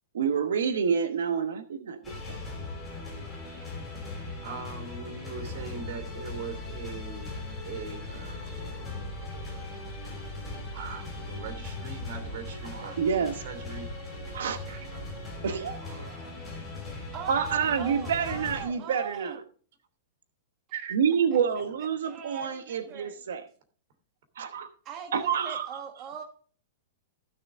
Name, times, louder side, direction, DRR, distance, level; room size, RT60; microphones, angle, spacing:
voice 1, 0.1-2.4 12.7-13.4 14.3-14.6 15.4-15.8 17.3-19.4 20.9-23.4 24.4-24.7 25.1-25.8, right 7 dB, 85° right, 8 dB, 1.1 m, -28 dB
sound 1, 2.0-18.6, left 2 dB, 5° left, 3.9 m, -39 dB
voice 2, 4.4-7.3 7.6-9.8 10.7-13.9 14.7-15.1 15.5-16.3 20.7-21.0, right 5 dB, 55° right, 7 dB, 2.6 m, -42 dB
voice 3, 17.1-19.4 22.0-23.1 24.8-26.2, right 7 dB, 25° right, 3 dB, 1.3 m, -41 dB
15.0 x 6.7 x 3.6 m, 0.43 s
supercardioid pair, 165°, 0 cm